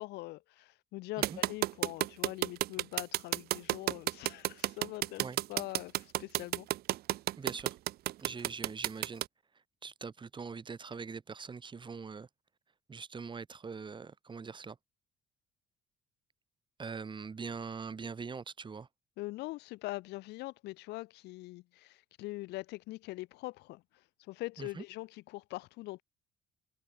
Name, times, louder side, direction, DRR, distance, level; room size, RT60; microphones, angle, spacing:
voice 1, 0.0-5.2 5.5-6.7 19.2-23.8 24.3-26.0, left 20 dB, 90° left, 2.2 m, -42 dB
sound 1, 1.2-9.2, right 15 dB, 70° right, 0.6 m, -31 dB
voice 2, 7.4-7.8 8.2-9.2 9.8-12.3 12.9-14.8 16.8-18.9 24.6-24.8, right 5 dB, 30° right, 2.9 m, -42 dB
cardioid pair, 110°, 17 cm